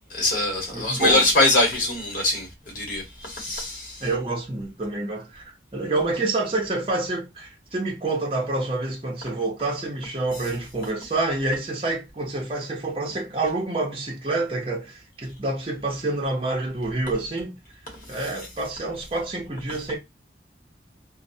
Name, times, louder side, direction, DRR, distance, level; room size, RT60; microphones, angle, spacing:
voice 1, 0.1-4.1 17.9-18.2, left 2 dB, 50° left, 1.2 m, -23 dB
voice 2, 0.7-1.2 4.0-17.5 18.1-20.0, right 2 dB, 30° right, 0.6 m, -27 dB
3.1 x 2.0 x 2.6 m
head